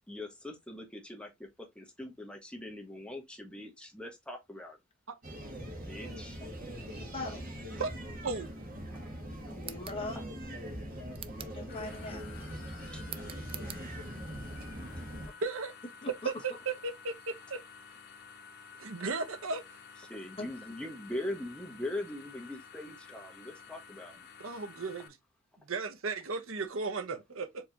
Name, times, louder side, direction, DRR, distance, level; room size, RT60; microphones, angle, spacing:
voice 1, 0.1-1.3 1.8-4.8 5.8-6.4 20.1-24.1, left 1 dB, 5° left, 1.1 m, -41 dB
sound 1, 5.2-15.3, equal, 45° right, 1.6 m, -42 dB
voice 2, 6.9-7.4 9.4-10.2 11.4-12.3 16.0-16.3 20.4-20.5, left 2 dB, 25° left, 1.4 m, -41 dB
voice 3, 8.2-8.7 15.4-15.7 16.2-17.6 18.8-19.6 24.4-25.2 25.7-27.6, right 4 dB, 75° right, 0.8 m, -35 dB
sound 2, 9.6-10.0 11.1-11.6 13.0-13.8, right 10 dB, 25° right, 0.3 m, -45 dB
sound 3, 11.7-25.1, left 5 dB, 50° left, 0.8 m, -52 dB
4.7 x 3.2 x 2.7 m
head